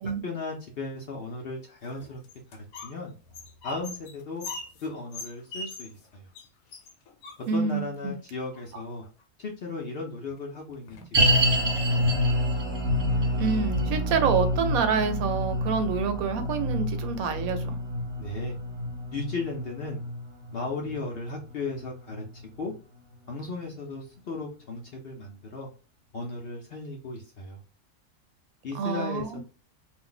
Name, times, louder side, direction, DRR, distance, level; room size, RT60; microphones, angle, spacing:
voice 1, 0.2-2.2 2.5-3.1 3.6-4.4 4.8-6.3 7.5-9.1 9.4-11.0 11.3-12.0 18.2-18.6 19.1-20.0 20.5-22.7 23.3-25.7 26.1-27.6 28.6-29.4, left 3 dB, 60° left, 0.6 m, -36 dB
sound 1, 1.8-3.0 3.3-6.1 6.3-6.5 6.7-7.8 8.5-9.2 10.3-10.4 10.7-11.2 11.7-11.9 12.3-12.4 12.9-13.7, left 2 dB, 80° left, 1.1 m, -42 dB
voice 2, 7.5-8.2 13.3-17.8 28.7-29.4, right 5 dB, 80° right, 1.0 m, -27 dB
sound 2, 11.1-22.4 22.7-22.8 23.4-23.5, equal, 30° right, 0.7 m, -27 dB
2.5 x 2.1 x 3.7 m
omnidirectional pair, 1.5 m